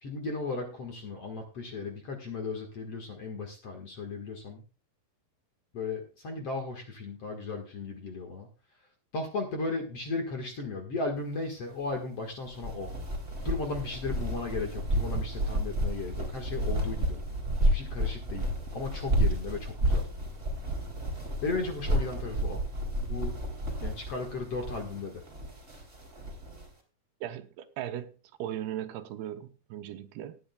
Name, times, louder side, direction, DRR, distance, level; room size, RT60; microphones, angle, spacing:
voice 1, 0.0-4.6 5.7-8.5 9.1-12.9 13.4-17.2 17.6-20.1 21.4-22.6 23.1-23.4 23.8-25.2, left 3 dB, 50° left, 2.1 m, -36 dB
sound 1, 12.5-26.7, right 1 dB, 20° right, 3.1 m, -31 dB
voice 2, 27.2-30.4, right 11 dB, 80° right, 2.8 m, -38 dB
19.0 x 10.0 x 2.3 m
omnidirectional pair, 4.7 m